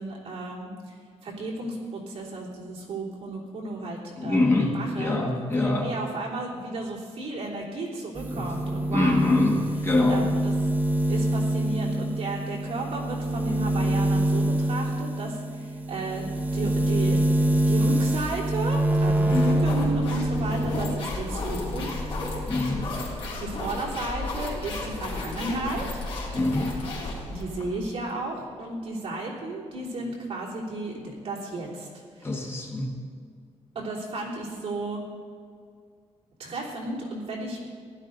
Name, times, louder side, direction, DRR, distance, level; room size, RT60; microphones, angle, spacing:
voice 1, 0.0-9.4 10.1-10.5 11.1-22.0 23.2-26.0 27.3-32.4 33.7-35.0 36.4-37.6, right 2 dB, 55° right, -4 dB, 3.3 m, -34 dB
voice 2, 4.2-5.9 8.3-8.5 8.9-10.2 19.3-19.6 22.5-22.9 26.3-26.8 32.2-32.9, left 2 dB, 20° left, 1 dB, 1.2 m, -24 dB
sound 1, 8.2-21.1 21.4-22.5, right 1 dB, 15° right, 0.7 m, -26 dB
sound 2, 18.9-27.7, left 2 dB, 50° left, 3.5 m, -33 dB
15.5 x 12.0 x 4.0 m, 2.1 s
wide cardioid pair, 170°, 12 cm